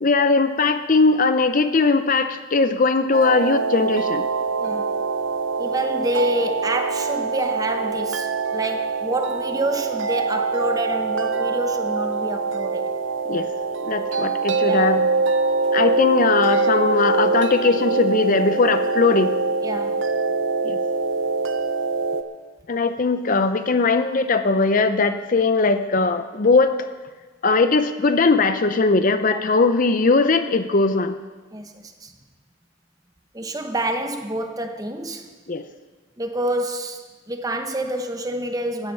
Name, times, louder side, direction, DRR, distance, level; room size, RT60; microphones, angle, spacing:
voice 1, 0.0-4.3 13.3-13.5 13.8-15.1 15.7-19.3 20.6-20.8 22.7-26.9 27.4-31.2 35.5-35.6, left 3 dB, 40° left, 9 dB, 0.6 m, -19 dB
sound 1, 3.1-22.2, right 4 dB, 75° right, 0.9 m, -24 dB
voice 2, 4.6-4.9 5.6-12.9 14.7-14.8 19.6-20.0 29.3-29.4 31.5-32.1 33.3-35.4 36.2-38.9, right 1 dB, 20° right, 6 dB, 0.9 m, -27 dB
15.5 x 9.9 x 5.6 m, 1.3 s
head